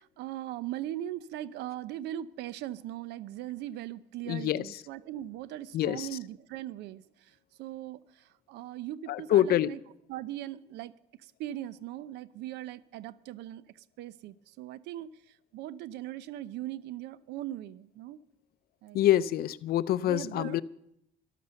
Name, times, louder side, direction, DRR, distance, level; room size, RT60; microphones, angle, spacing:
voice 1, 0.0-9.8 10.1-10.9 11.2-18.2 18.8-19.0 20.0-20.6, right 13 dB, 85° right, 18 dB, 0.7 m, -40 dB
voice 2, 4.3-4.6 5.7-6.1 9.1-9.7 18.9-20.6, left 12 dB, 65° left, 16 dB, 0.6 m, -26 dB
13.5 x 12.0 x 6.9 m, 0.77 s
cardioid pair, 110°, 17 cm